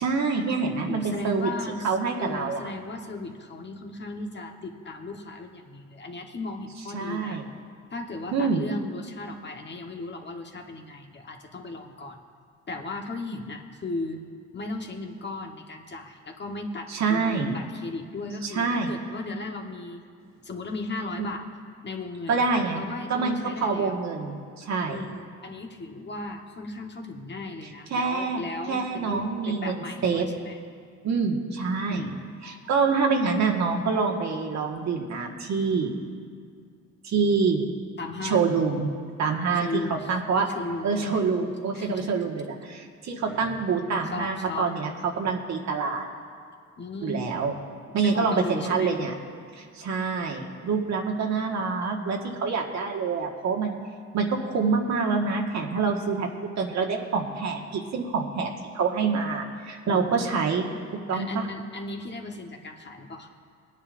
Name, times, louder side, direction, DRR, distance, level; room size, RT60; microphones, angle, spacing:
voice 1, 0.0-1.5 1.8-2.6 6.9-7.4 8.3-8.6 16.9-17.5 18.4-18.9 21.2-21.3 22.3-22.8 23.1-25.0 27.9-28.4 28.7-29.7 30.0-30.3 31.0-32.1 32.4-35.9 37.0-37.6 38.2-38.9 39.2-40.5 40.8-46.1 47.0-47.5 47.9-49.1 49.6-53.8 54.1-60.6 61.1-61.4, right 5 dB, 65° right, 1 dB, 1.7 m, -26 dB
voice 2, 0.9-7.4 7.9-12.2 12.7-14.2 14.5-20.0 20.4-21.5 21.8-22.5 22.7-24.0 24.9-30.6 31.9-32.2 38.0-38.5 39.5-40.2 40.5-41.2 41.7-42.1 43.3-43.6 44.0-44.7 45.0-45.3 46.8-47.3 48.0-48.9 59.8-60.2 61.1-63.3, left 2 dB, 35° left, 3 dB, 1.2 m, -36 dB
22.5 x 9.8 x 2.6 m, 2.1 s
cardioid pair, 90°, 30 cm